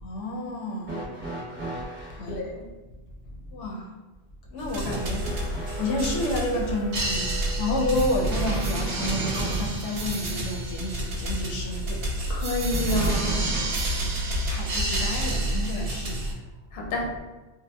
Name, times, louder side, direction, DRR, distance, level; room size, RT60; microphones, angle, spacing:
voice 1, 0.0-1.4 2.2-2.6 3.5-3.9 4.5-12.3 14.5-16.4 16.8-16.9, left 2 dB, 85° left, -1 dB, 0.9 m, -31 dB
sound 1, 0.8-2.3 4.8-9.9 12.9-13.9 15.1-15.2 16.3-16.4, right 2 dB, 15° right, 0.6 m, -38 dB
voice 2, 2.3-2.7 12.3-13.5 16.7-17.1, left 2 dB, 60° left, -1 dB, 0.7 m, -29 dB
sound 2, 4.6-16.3, right 1 dB, 65° right, 0.7 m, -28 dB
3.4 x 2.0 x 2.2 m, 1.2 s
omnidirectional pair, 1.2 m